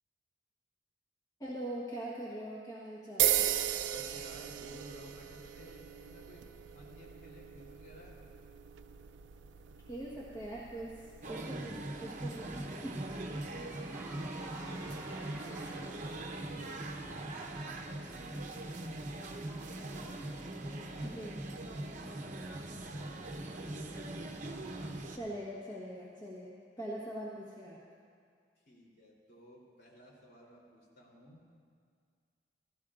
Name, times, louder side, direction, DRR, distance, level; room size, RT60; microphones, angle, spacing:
voice 1, 1.4-3.4 9.9-10.9 11.3-12.9 21.0-21.4 25.1-27.8, right 1 dB, 20° left, -6 dB, 1.3 m, -42 dB
sound 1, 3.2-11.3, right 11 dB, 90° right, 0.5 m, -36 dB
voice 2, 3.8-8.2 13.4-17.1 17.6-18.6 19.8-20.2 20.5-22.6 28.5-31.4, equal, 60° left, -4 dB, 3.3 m, -56 dB
sound 2, 11.2-25.2, right 2 dB, 45° right, 0.9 m, -41 dB
Car / Engine, 11.8-16.3, right 2 dB, 20° right, 1.3 m, -53 dB
17.0 x 15.5 x 2.5 m, 2.1 s
head